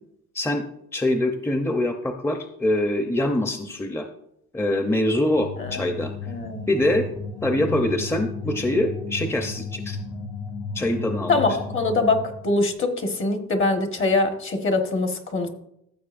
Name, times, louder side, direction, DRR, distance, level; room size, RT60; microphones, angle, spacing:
voice 1, 0.9-4.1 4.5-6.1 6.7-7.1 7.4-10.0 10.7-11.4, left 1 dB, 10° left, 5 dB, 0.7 m, -24 dB
sound 1, 5.3-12.6, left 4 dB, 90° left, 2.9 m, -34 dB
voice 2, 6.3-6.7 11.3-12.2 12.4-15.5, left 3 dB, 40° left, 5 dB, 1.5 m, -23 dB
14.5 x 6.7 x 2.6 m, 0.78 s
cardioid pair, 90°, 30 cm